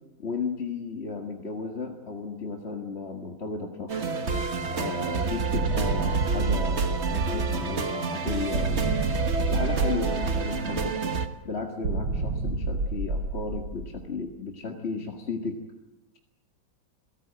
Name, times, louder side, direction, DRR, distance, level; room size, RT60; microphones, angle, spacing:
voice 1, 0.2-4.1 4.7-9.0 9.5-11.1 11.4-15.6, left 4 dB, 35° left, 2 dB, 1.9 m, -34 dB
sound 1, 3.9-11.3, right 4 dB, 40° right, 1.4 m, -29 dB
sound 2, 5.5-7.8 8.5-10.8 11.8-14.1, right 3 dB, 85° right, 2.7 m, -29 dB
27.5 x 17.5 x 8.9 m, 1.0 s
omnidirectional pair, 2.1 m